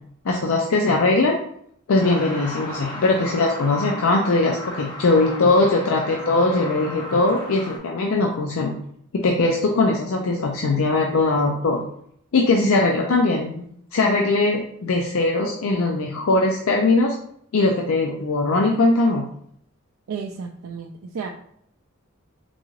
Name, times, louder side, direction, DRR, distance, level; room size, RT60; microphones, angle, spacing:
voice 1, 0.2-1.4 1.9-8.7 9.1-11.8 12.3-13.6 13.9-17.1 17.5-19.3, left 2 dB, 75° left, 1 dB, 0.5 m, -20 dB
Truck, 2.0-7.8, left 1 dB, 20° left, 0.7 m, -35 dB
voice 2, 20.1-21.3, right 6 dB, 85° right, 2 dB, 0.4 m, -32 dB
3.9 x 2.4 x 3.1 m, 0.67 s
head